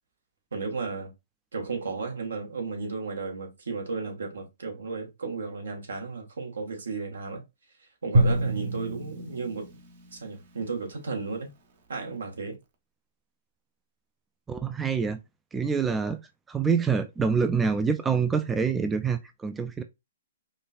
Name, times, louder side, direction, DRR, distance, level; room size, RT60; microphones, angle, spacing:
voice 1, 0.5-1.1 1.5-7.4 8.0-9.7 10.1-11.5 11.9-12.6, right 4 dB, 75° right, 1.3 m, -34 dB
Drum, 8.1-10.5, right 1 dB, 50° right, 0.9 m, -27 dB
voice 2, 14.5-15.2 15.5-16.2 16.5-19.8, right 5 dB, 10° right, 0.3 m, -26 dB
5.0 x 2.3 x 2.4 m
hypercardioid pair, 125°, 0 cm